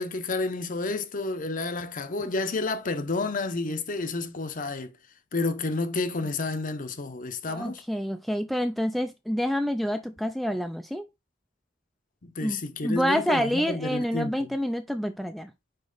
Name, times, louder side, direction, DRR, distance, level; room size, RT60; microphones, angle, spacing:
voice 1, 0.0-4.9 5.3-7.8 12.2-14.5, left 3 dB, 40° left, 0.7 m, -30 dB
voice 2, 7.5-11.1 12.4-15.5, equal, ahead, 0.4 m, -28 dB
5.3 x 4.7 x 3.9 m
head